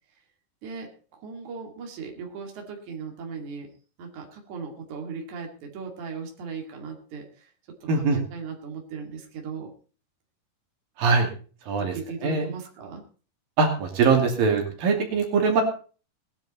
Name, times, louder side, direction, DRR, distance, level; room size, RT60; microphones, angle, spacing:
voice 1, 0.6-3.7 4.0-7.5 7.8-9.7 11.8-13.0, right 5 dB, 60° right, 2 dB, 3.7 m, -38 dB
voice 2, 7.9-8.2 11.0-11.3 11.7-12.0 12.2-12.5 13.6-15.6, right 4 dB, 85° right, 3 dB, 4.4 m, -22 dB
19.5 x 10.5 x 4.2 m, 0.39 s
omnidirectional pair, 3.9 m